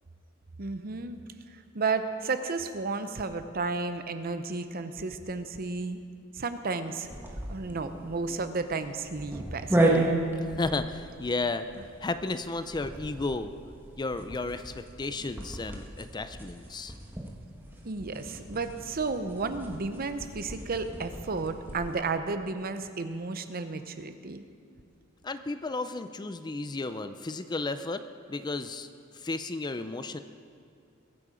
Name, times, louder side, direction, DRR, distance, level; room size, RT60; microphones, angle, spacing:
voice 1, 0.6-1.2 1.5-6.0 6.3-7.1 7.5-9.8 17.8-24.4, right 4 dB, 45° right, 9 dB, 0.7 m, -33 dB
sound 1, 7.1-22.0, right 2 dB, 10° right, 1.4 m, -34 dB
voice 2, 10.6-11.7 12.0-13.5 14.0-16.9 25.2-28.0 28.3-28.9 29.1-30.2, left 3 dB, 20° left, 10 dB, 0.4 m, -33 dB
21.5 x 8.6 x 5.0 m, 2.4 s
head